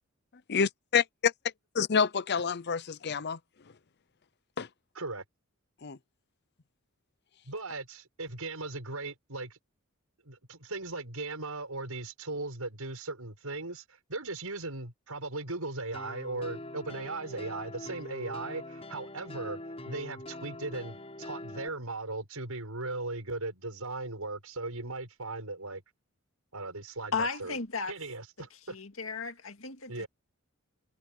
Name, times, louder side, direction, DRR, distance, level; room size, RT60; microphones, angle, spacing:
voice 1, 0.5-1.3 1.8-3.4 4.6-4.7 5.8-6.0, left 6 dB, 50° left, 0.7 m, -28 dB
voice 2, 7.5-9.6 10.3-19.6 19.9-25.8 26.5-27.6 27.9-28.8 29.9-30.1, right 2 dB, 90° right, 6.4 m, -38 dB
sound 1, 15.9-21.7, left 1 dB, 30° left, 7.3 m, -43 dB
voice 3, 27.1-27.9 28.7-30.1, left 4 dB, 65° left, 2.2 m, -34 dB
head